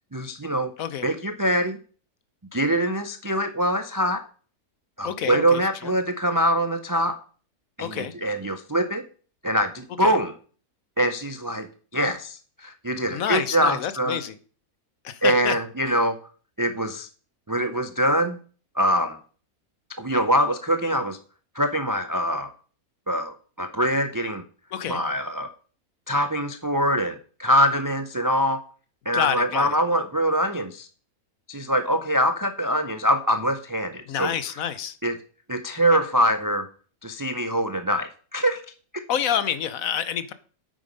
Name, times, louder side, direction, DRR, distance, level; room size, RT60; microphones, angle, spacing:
voice 1, 0.1-0.7 1.0-1.8 2.5-4.2 5.0-7.2 7.8-9.0 9.4-10.3 11.0-11.7 11.9-14.2 15.2-16.2 16.6-17.1 17.5-18.4 18.7-19.2 20.0-21.2 21.5-22.5 23.1-24.4 24.9-25.5 26.1-28.6 29.1-30.9 31.5-34.3 35.0-35.1 35.5-36.7 37.0-38.6, equal, 30° right, 8 dB, 0.3 m, -24 dB
voice 2, 5.0-5.9 7.8-8.1 10.0-10.2 13.1-14.3 15.0-15.6 24.7-25.0 29.1-29.8 34.1-35.0 39.1-40.3, left 9 dB, 70° left, 14 dB, 1.2 m, -28 dB
8.8 x 8.7 x 5.3 m, 0.42 s
omnidirectional pair, 1.6 m